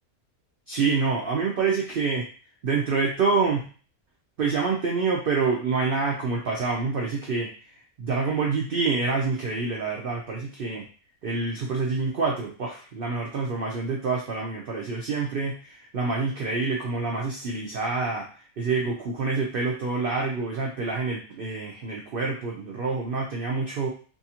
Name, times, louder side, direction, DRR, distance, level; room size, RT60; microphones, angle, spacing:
voice 1, 0.7-2.2 2.6-3.7 4.4-7.5 8.0-10.9 11.2-18.3 18.6-23.9, right 4 dB, 85° right, -1 dB, 0.4 m, -27 dB
2.8 x 2.4 x 2.8 m, 0.40 s
omnidirectional pair, 1.6 m